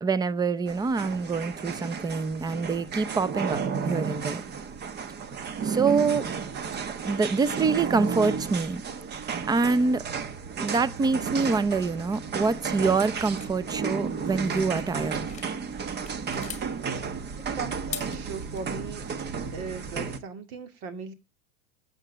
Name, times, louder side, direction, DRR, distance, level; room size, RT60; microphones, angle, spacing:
voice 1, 0.0-4.4 5.6-6.3 7.0-8.8 9.5-10.0 10.6-15.2, right 4 dB, 10° right, 0.6 m, -26 dB
sound 1, 0.7-20.2, right 6 dB, 30° right, 1.2 m, -33 dB
sound 2, 13.2-15.5 15.9-16.7 17.7-18.6, left 8 dB, 20° left, 1.8 m, -42 dB
voice 2, 17.5-19.0 19.5-21.1, right 5 dB, 55° right, 2.6 m, -38 dB
8.9 x 7.9 x 7.4 m
supercardioid pair, 120°, 36 cm